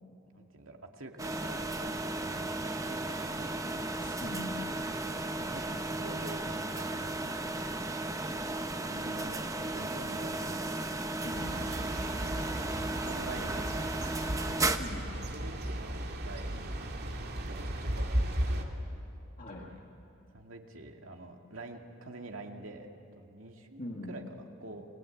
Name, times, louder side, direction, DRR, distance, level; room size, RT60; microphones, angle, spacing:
voice 1, 0.3-3.5 5.4-6.4 6.7-7.3 8.8-10.7 12.9-14.3 15.2-16.7 17.5-18.7 19.5-19.8 20.3-22.9 23.2-24.9, right 2 dB, 80° right, 2 dB, 2.4 m, -47 dB
sound 1, 1.2-14.8, right 2 dB, 15° right, 1.0 m, -35 dB
voice 2, 4.0-4.7 11.2-11.7 14.8-15.1 19.4-19.7 23.8-24.2, left 1 dB, 40° left, -1 dB, 2.0 m, -41 dB
sound 2, 11.3-18.6, right 1 dB, 55° right, 2.3 m, -35 dB
29.5 x 21.5 x 8.7 m, 2.7 s
head